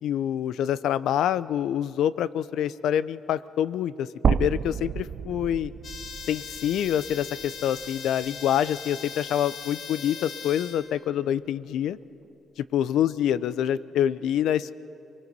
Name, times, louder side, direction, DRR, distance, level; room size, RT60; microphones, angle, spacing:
voice 1, 0.0-5.7 6.3-12.0 12.6-14.7, left 10 dB, 80° left, 17 dB, 0.5 m, -26 dB
sound 1, 4.2-8.4 8.8-8.9 10.3-10.4, right 7 dB, 55° right, 0.5 m, -30 dB
sound 2, 5.8-10.9, left 6 dB, 60° left, 1.9 m, -40 dB
28.5 x 21.0 x 5.4 m, 2.7 s
cardioid pair, 90°, 0 cm